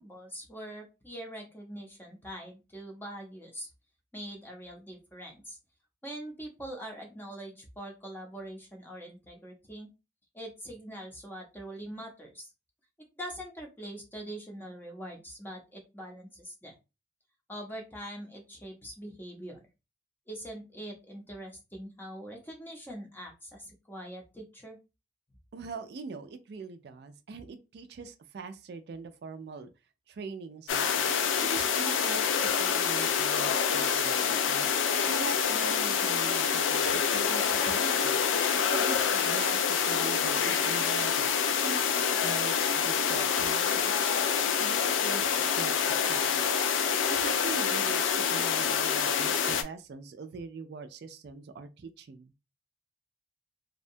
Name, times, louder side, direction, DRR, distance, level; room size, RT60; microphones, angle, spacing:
voice 1, 0.0-3.7 4.1-5.6 6.0-9.9 10.3-12.5 13.2-16.7 17.5-19.6 20.3-24.8, right 1 dB, 10° left, 0.6 m, -43 dB
voice 2, 25.5-29.7 30.1-38.2 38.7-41.3 41.6-44.1 44.5-46.5 47.1-52.3, right 4 dB, 60° right, 0.3 m, -42 dB
sound 1, 30.7-49.6, left 7 dB, 90° left, 0.4 m, -27 dB
2.7 x 2.2 x 2.6 m
head